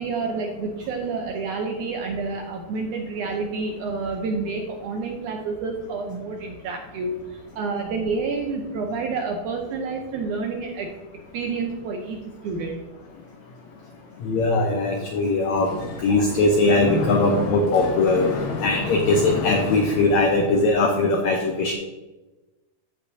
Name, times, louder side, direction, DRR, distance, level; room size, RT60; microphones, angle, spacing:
voice 1, 0.0-7.2 7.5-10.9 11.3-12.2 12.4-12.8, right 4 dB, 75° right, 2 dB, 1.8 m, -29 dB
voice 2, 14.2-15.7 16.0-18.3 18.6-21.8, left 2 dB, 85° left, 2 dB, 1.6 m, -20 dB
Mechanisms, 15.5-20.7, left 4 dB, 65° left, 3.0 m, -31 dB
15.0 x 5.3 x 2.7 m, 1.1 s
omnidirectional pair, 4.4 m